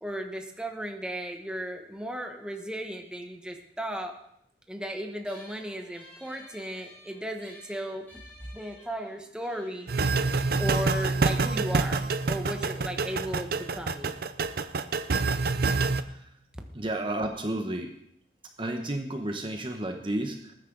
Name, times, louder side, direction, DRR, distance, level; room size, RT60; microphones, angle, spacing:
voice 1, 0.0-4.2 4.7-8.0 8.5-9.9 10.6-14.1, equal, 5° right, 4 dB, 1.2 m, -35 dB
sound 1, 5.2-12.0, left 1 dB, 10° left, 6.9 m, -54 dB
sound 2, 9.9-16.0, right 3 dB, 60° right, 0.6 m, -27 dB
voice 2, 16.7-17.9 18.6-20.5, right 1 dB, 30° right, 4 dB, 1.0 m, -32 dB
20.0 x 9.8 x 3.9 m, 0.73 s
head